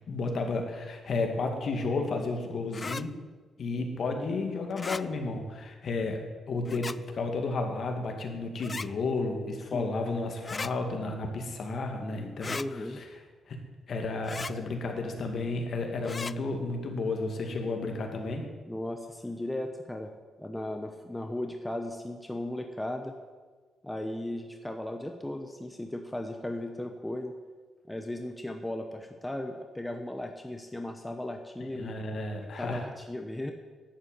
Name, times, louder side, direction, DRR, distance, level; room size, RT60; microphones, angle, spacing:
voice 1, 0.1-3.1 3.6-6.2 6.5-13.1 13.5-13.6 13.9-18.5 31.8-32.8, left 3 dB, 50° left, 4 dB, 2.4 m, -32 dB
sound 1, 2.7-3.0 4.7-5.0 6.7-7.0 8.6-8.9 10.4-10.7 12.4-12.7 14.2-14.5 16.0-16.3, left 4 dB, 25° left, 0.4 m, -36 dB
voice 2, 12.5-13.0 18.7-20.1 20.4-23.1 23.8-27.4 27.9-31.9 32.6-33.5, left 1 dB, 5° left, 4 dB, 1.0 m, -36 dB
11.5 x 8.3 x 9.4 m, 1.4 s
cardioid pair, 135°, 0 cm